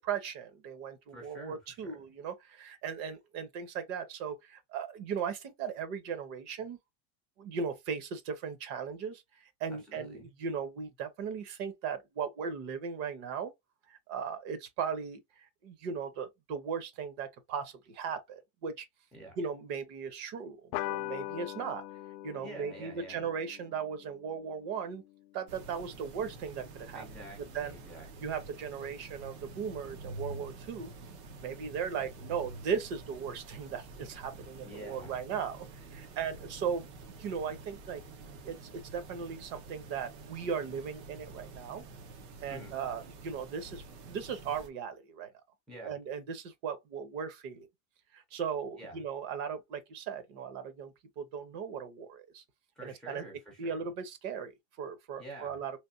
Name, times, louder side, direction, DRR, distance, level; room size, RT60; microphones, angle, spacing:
voice 1, 0.1-6.8 7.4-13.5 13.9-18.9 19.4-21.8 22.2-25.0 25.3-27.0 27.5-27.7 28.2-30.9 31.4-36.9 37.2-38.0 38.4-41.8 42.4-45.3 45.8-47.7 48.1-52.4 52.8-53.3 53.6-55.7, right 6 dB, 50° right, 0.9 m, -37 dB
voice 2, 1.1-1.9 9.8-10.3 19.1-19.4 22.3-23.3 26.9-28.3 34.6-35.2 42.5-42.8 45.7-46.0 48.8-49.0 52.8-53.8 55.2-55.6, right 1 dB, ahead, 0.4 m, -48 dB
sound 1, 20.7-25.6, left 15 dB, 90° left, 0.6 m, -42 dB
sound 2, 25.5-44.7, right 3 dB, 85° right, 1.2 m, -48 dB
3.4 x 3.0 x 2.6 m
cardioid pair, 170°, 48 cm